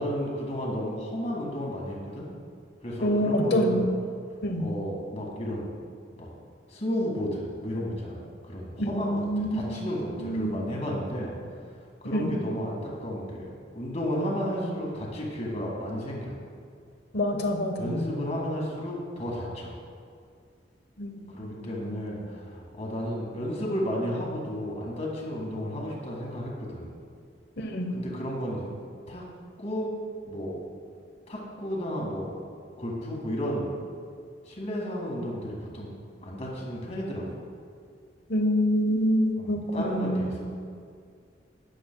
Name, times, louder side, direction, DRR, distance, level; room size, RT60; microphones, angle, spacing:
voice 1, 0.0-2.3 2.8-3.8 4.6-5.7 6.2-6.3 6.7-11.3 12.0-13.5 13.7-16.4 17.8-19.7 21.3-26.9 27.9-28.7 29.1-29.2 29.6-29.9 30.3-30.6 31.3-32.3 32.8-33.7 34.5-35.9 36.2-37.4 39.4-40.5, equal, 35° left, -3 dB, 1.9 m, -32 dB
voice 2, 3.0-3.9 4.4-4.7 8.8-9.7 10.2-10.6 12.1-12.3 17.1-18.1 21.0-22.2 27.6-27.9 38.3-40.5, equal, 60° left, 4 dB, 1.0 m, -27 dB
12.5 x 9.2 x 2.3 m, 2.2 s
head